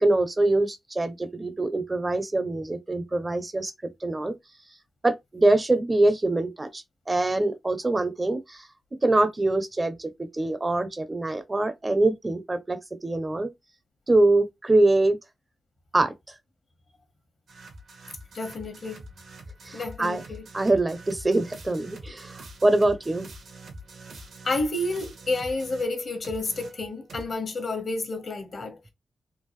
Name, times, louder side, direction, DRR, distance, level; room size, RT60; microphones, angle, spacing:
voice 1, 0.0-3.7 4.0-4.3 5.0-8.6 9.0-13.5 14.1-15.2 15.9-16.1 19.7-20.2 20.5-23.3, right 2 dB, 25° right, 0.7 m, -24 dB
sound 1, 17.5-26.0 26.2-27.4, right 2 dB, 80° right, 1.3 m, -45 dB
voice 2, 18.3-19.0 19.7-20.4 24.4-28.9, left 2 dB, 55° left, 1.2 m, -30 dB
3.7 x 2.4 x 3.2 m
cardioid pair, 70°, 0 cm